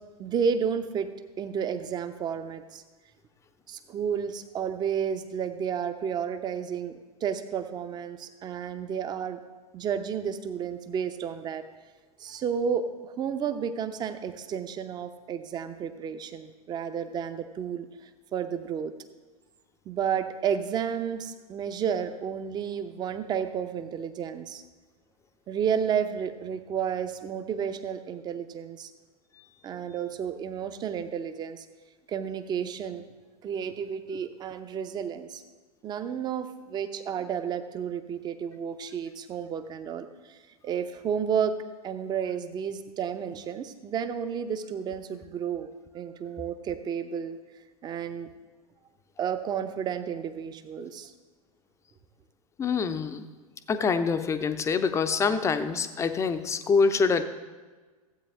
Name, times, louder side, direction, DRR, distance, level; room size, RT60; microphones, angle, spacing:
voice 1, 0.2-1.1 1.4-2.8 3.7-9.4 9.7-11.6 12.2-17.9 18.3-18.9 19.9-24.6 25.5-28.9 29.6-31.7 32.1-33.1 33.4-35.4 35.8-40.4 40.6-41.6 41.8-45.7 45.9-47.4 47.8-48.3 49.2-51.1, right 7 dB, 20° right, 10 dB, 0.7 m, -31 dB
voice 2, 52.6-53.2 53.7-57.2, left 5 dB, 15° left, 10 dB, 0.6 m, -25 dB
15.5 x 8.4 x 3.5 m, 1.4 s
figure-of-eight pair, 95°, 20 cm